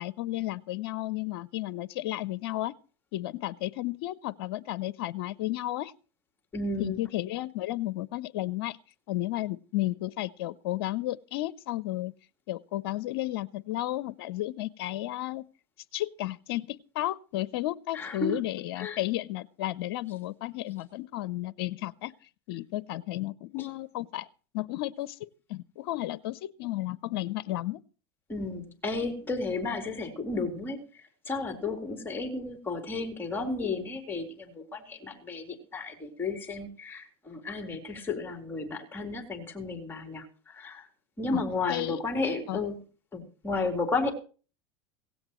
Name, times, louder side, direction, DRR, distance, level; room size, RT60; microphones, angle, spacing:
voice 1, 0.0-2.7 3.1-5.9 6.8-8.8 9.1-12.1 12.5-15.4 15.9-22.1 22.5-24.3 24.5-27.8 41.3-41.4 41.7-42.0 42.5-42.6, left 16 dB, 70° left, 0.6 m, -33 dB
voice 2, 6.5-7.0 17.9-18.4 18.8-19.0 23.6-23.7 28.3-40.9 41.2-42.8 43.1-44.1, left 3 dB, 15° left, 3.8 m, -33 dB
17.0 x 16.5 x 3.1 m
hypercardioid pair, 100°, 13 cm